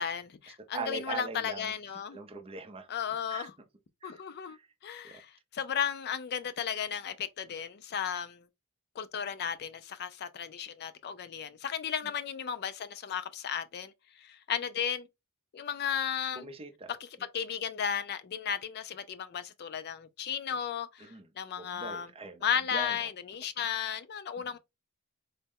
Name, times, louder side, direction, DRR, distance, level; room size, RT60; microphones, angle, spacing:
voice 1, 0.0-2.2 2.9-3.5 4.0-4.6 4.8-8.4 9.0-13.9 14.2-15.1 15.5-16.4 17.3-21.1 21.4-22.1 22.4-24.6, left 8 dB, 45° left, 0.4 m, -34 dB
voice 2, 0.7-1.7 2.1-2.9 3.3-3.5 4.0-4.7 5.0-5.2 16.3-16.9 21.0-21.3 21.6-22.4 22.7-23.1 24.4-24.5, right 4 dB, 25° right, 0.5 m, -41 dB
4.1 x 2.1 x 3.5 m
head